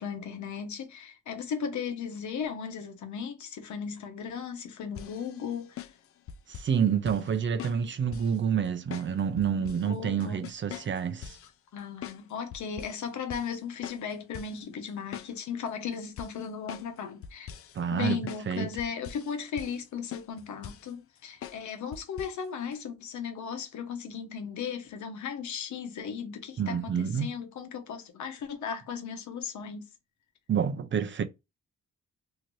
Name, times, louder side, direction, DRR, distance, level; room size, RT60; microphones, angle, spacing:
voice 1, 0.0-5.9 9.6-10.4 11.7-17.5 17.9-29.9, left 6 dB, 75° left, 0.9 m, -36 dB
sound 1, 5.0-6.8 7.1-7.3 7.6-8.4 8.9-9.9 10.2-11.5 12.0-12.2 12.5-13.0 13.3-13.6 13.8-14.6 14.9-15.7 16.2-17.0 17.2-17.8 18.3-18.5 18.8-19.3 19.6-19.9 20.1-20.9 21.4-21.6 21.9-22.4 22.7-22.8, left 9 dB, 50° left, 0.4 m, -43 dB
voice 2, 6.5-11.4 17.7-18.2 18.5-18.7 26.6-27.3 30.5-31.2, right 7 dB, 40° right, 0.5 m, -28 dB
2.8 x 2.5 x 3.0 m
cardioid pair, 110°, 29 cm